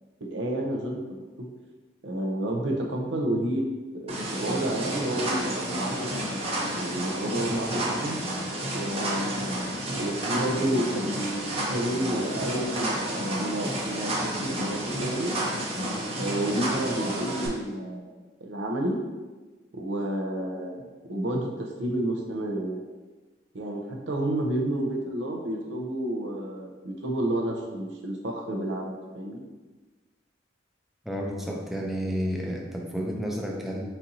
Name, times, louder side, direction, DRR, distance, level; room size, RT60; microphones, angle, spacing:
voice 1, 0.2-1.5 2.0-3.6 3.9-8.2 8.7-9.6 9.9-15.4 16.2-18.1 18.4-19.0 19.7-22.8 23.5-29.4, right 1 dB, 80° right, 1 dB, 0.7 m, -30 dB
sound 1, 4.1-17.5, right 1 dB, 35° right, 0.8 m, -31 dB
voice 2, 31.0-33.9, equal, ahead, -1 dB, 0.5 m, -31 dB
4.3 x 3.8 x 2.7 m, 1.3 s
head